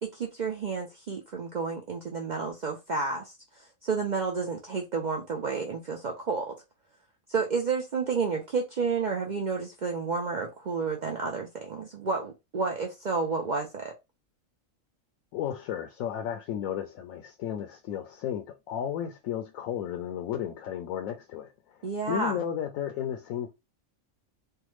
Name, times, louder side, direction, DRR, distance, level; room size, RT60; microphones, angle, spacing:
voice 1, 0.0-6.5 7.3-13.9 21.8-22.4, right 4 dB, 65° right, 0.4 m, -31 dB
voice 2, 15.3-23.5, left 9 dB, 80° left, 1.0 m, -34 dB
3.4 x 2.1 x 3.0 m
omnidirectional pair, 1.4 m